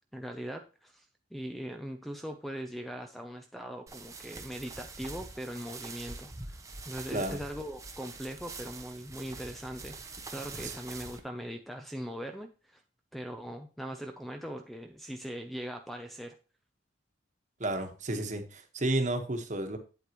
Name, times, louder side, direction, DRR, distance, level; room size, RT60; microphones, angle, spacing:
voice 1, 0.1-1.1 1.3-6.6 6.9-10.0 10.3-12.8 13.1-16.3, equal, ahead, 6 dB, 0.5 m, -40 dB
sound 1, 3.9-11.2, right 3 dB, 15° right, 0.9 m, -44 dB
voice 2, 17.6-19.8, right 1 dB, 40° right, 6 dB, 1.3 m, -32 dB
8.4 x 8.2 x 3.0 m, 0.34 s
head